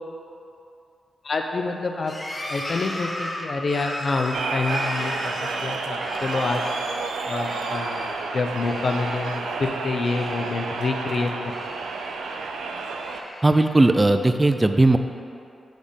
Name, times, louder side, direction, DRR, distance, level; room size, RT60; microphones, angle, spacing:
voice 1, 1.2-2.1 2.5-6.6 7.3-8.0 8.3-11.5, left 3 dB, 55° left, 3 dB, 0.6 m, -27 dB
sound 1, 2.0-7.1 7.4-8.2 8.6-9.6 9.8-11.0 11.4-12.4 12.9-13.9, left 1 dB, 20° left, 0.9 m, -36 dB
sound 2, 4.3-13.2, right 4 dB, 90° right, 0.4 m, -30 dB
voice 2, 13.4-15.0, right 2 dB, 20° right, 7 dB, 0.3 m, -17 dB
6.4 x 3.5 x 5.1 m, 2.6 s
cardioid pair, 55°, 0 cm